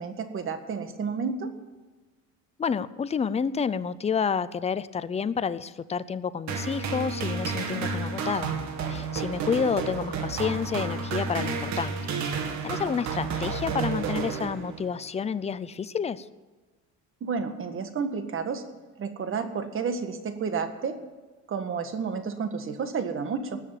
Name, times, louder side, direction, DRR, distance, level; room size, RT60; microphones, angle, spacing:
voice 1, 0.0-1.5 17.2-18.6 19.0-21.0 21.5-23.6, right 5 dB, 40° right, 8 dB, 1.7 m, -31 dB
voice 2, 2.6-8.5 8.9-12.0 12.6-16.3, left 6 dB, 20° left, 15 dB, 0.5 m, -29 dB
sound 1, 6.5-15.0, right 5 dB, 65° right, 2.2 m, -31 dB
18.5 x 6.8 x 9.1 m, 1.3 s
cardioid pair, 115°, 31 cm